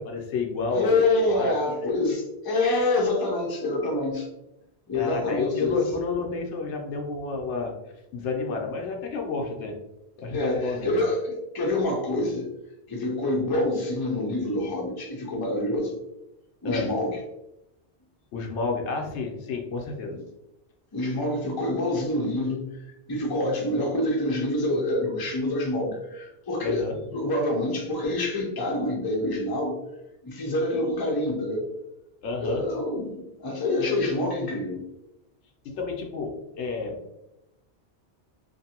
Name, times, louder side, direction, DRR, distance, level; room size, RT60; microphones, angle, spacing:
voice 1, 0.0-1.5 4.9-7.7 8.1-9.8 10.2-10.9 16.6-16.9 18.3-20.2 26.6-27.0 32.2-32.6 35.6-37.0, left 4 dB, 90° left, 1 dB, 0.9 m, -30 dB
voice 2, 0.7-4.3 4.9-5.8 10.3-12.5 12.9-16.0 16.6-17.2 20.1-20.2 20.9-22.8 23.1-29.8 30.2-31.6 32.4-34.8, left 2 dB, 30° left, 0 dB, 0.5 m, -26 dB
2.6 x 2.6 x 2.8 m, 0.88 s
omnidirectional pair, 1.1 m